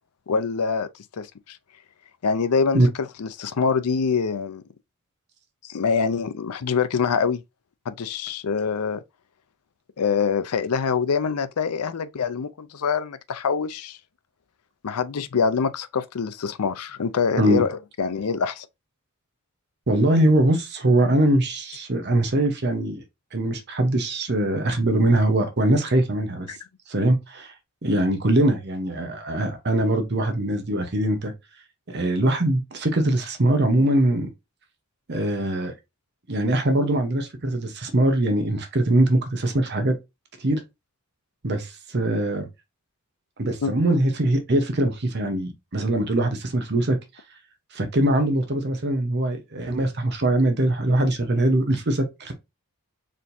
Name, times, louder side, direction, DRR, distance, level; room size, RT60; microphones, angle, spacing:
voice 1, 0.3-1.6 2.2-4.6 5.6-7.4 7.9-9.0 10.0-14.0 14.8-18.7 26.5-26.6 43.6-43.7, left 5 dB, 90° left, 0.5 m, -25 dB
voice 2, 19.9-23.0 23.3-26.5 26.9-27.5 27.8-31.3 31.9-34.3 35.1-35.7 36.3-39.9 40.4-40.6 41.4-42.5 43.4-47.0 47.7-52.3, right 1 dB, 50° right, 0.9 m, -22 dB
4.4 x 3.6 x 2.6 m
head